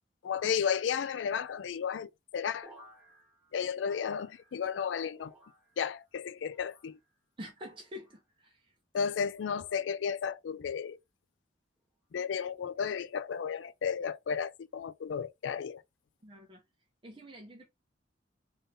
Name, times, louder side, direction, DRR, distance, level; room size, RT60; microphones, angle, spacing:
voice 1, 0.2-2.7 3.5-5.3 5.8-7.0 8.9-11.0 12.1-15.8, left 7 dB, 85° left, 0.4 m, -33 dB
sound 1, 2.6-4.8 5.1-6.0 6.5-7.2 7.8-8.2 9.1-9.5 10.4-10.7, equal, 5° right, 1.4 m, -58 dB
voice 2, 7.4-8.7 16.2-16.6 17.0-17.6, left 1 dB, 30° right, 0.8 m, -47 dB
3.6 x 2.7 x 3.4 m
head